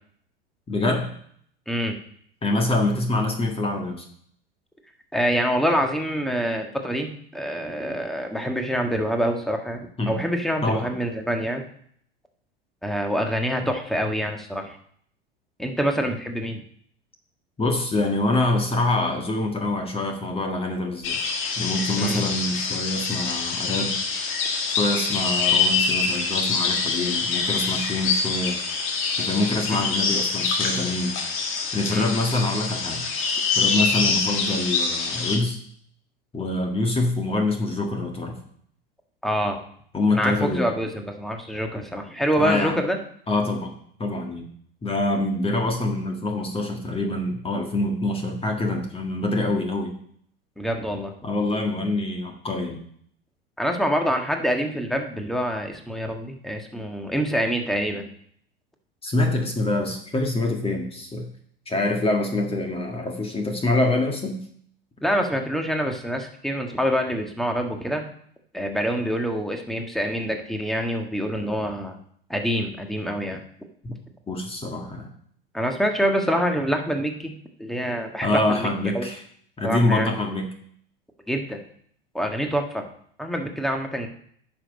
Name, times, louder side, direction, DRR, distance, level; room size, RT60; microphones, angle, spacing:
voice 1, 0.7-1.1 2.4-4.1 10.0-10.2 10.6-10.9 17.6-21.2 21.6-24.0 24.7-28.6 29.2-31.1 31.7-33.1 33.6-35.6 36.3-38.4 39.9-40.7 42.4-42.8 43.3-43.7 44.0-44.4 44.8-49.9 51.2-52.8 59.0-61.3 61.7-64.4 73.8-73.9 74.3-75.1 78.2-79.2 79.6-80.5, left 2 dB, 20° left, 3 dB, 1.7 m, -25 dB
voice 2, 1.7-2.0 5.1-11.6 12.8-14.8 15.6-16.6 22.0-22.2 29.7-29.8 31.9-32.1 39.2-39.6 40.1-43.0 50.6-51.1 53.6-58.1 65.0-68.0 68.5-72.0 72.3-73.4 75.5-77.3 77.6-78.7 78.9-79.1 79.6-80.1 81.3-81.6 82.1-82.8 83.2-84.1, equal, ahead, 4 dB, 1.5 m, -26 dB
sound 1, 21.0-35.4, left 4 dB, 45° left, 1.9 m, -25 dB
9.8 x 6.2 x 5.1 m, 0.62 s
figure-of-eight pair, 85°, 30 cm